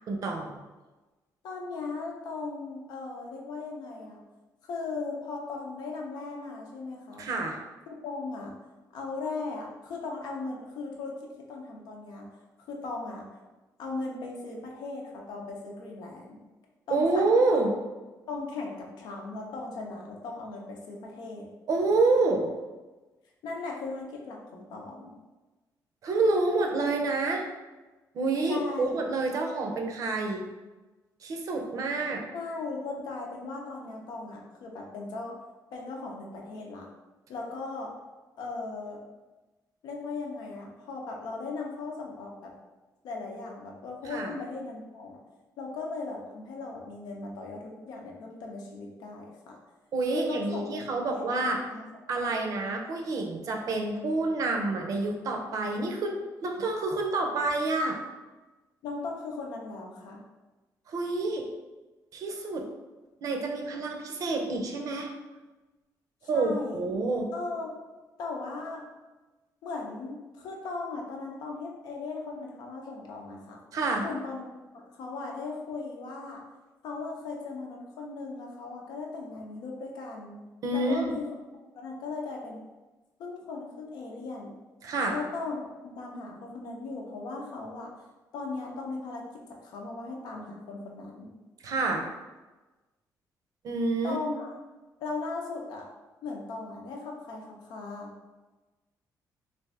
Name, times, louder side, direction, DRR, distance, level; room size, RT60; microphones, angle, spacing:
voice 1, 0.1-0.6 7.2-7.6 16.9-17.7 21.7-22.5 26.0-27.4 28.1-30.4 31.2-32.2 44.0-44.3 49.9-51.6 52.1-56.1 56.4-58.0 60.9-61.4 62.1-62.6 63.2-65.1 66.3-67.3 73.7-74.1 80.6-81.1 84.8-85.2 91.6-92.1 93.6-94.2, right 3 dB, 55° right, 2 dB, 0.5 m, -28 dB
voice 2, 1.4-4.2 4.7-7.3 7.9-8.5 8.9-12.3 12.7-13.2 13.8-16.4 16.9-17.2 18.3-21.5 23.4-25.1 28.5-29.0 32.3-35.4 35.7-36.9 37.3-37.9 38.4-39.0 39.8-42.5 43.0-45.2 45.6-49.6 50.1-50.7 51.1-51.9 52.3-52.4 58.8-60.2 66.3-66.8 67.3-67.7 68.2-68.8 69.6-73.6 74.0-74.5 75.0-76.4 76.8-80.4 80.7-81.3 81.7-82.6 83.2-84.5 85.1-87.9 88.3-91.3 94.0-94.5 95.0-95.9 96.2-98.1, left 3 dB, 80° left, 0 dB, 0.7 m, -37 dB
3.3 x 2.6 x 3.4 m, 1.2 s
cardioid pair, 145°, 7 cm